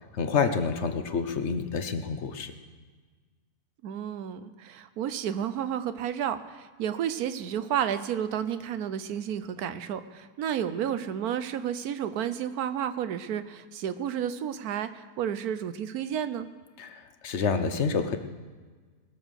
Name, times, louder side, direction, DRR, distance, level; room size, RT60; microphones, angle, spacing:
voice 1, 0.1-2.5 16.8-18.2, left 5 dB, 50° left, 8 dB, 1.1 m, -28 dB
voice 2, 3.8-16.5, right 9 dB, 70° right, 12 dB, 1.2 m, -31 dB
20.5 x 7.1 x 6.4 m, 1.4 s
omnidirectional pair, 1.7 m